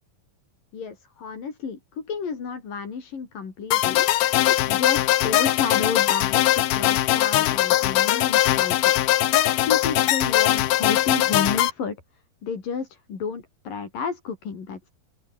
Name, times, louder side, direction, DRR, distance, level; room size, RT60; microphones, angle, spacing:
voice 1, 0.7-4.1 4.5-9.0 9.7-12.0 12.4-14.9, left 6 dB, 65° left, 5.9 m, -31 dB
sound 1, 3.7-11.7, left 14 dB, 80° left, 3.1 m, -21 dB
open air
omnidirectional pair, 4.3 m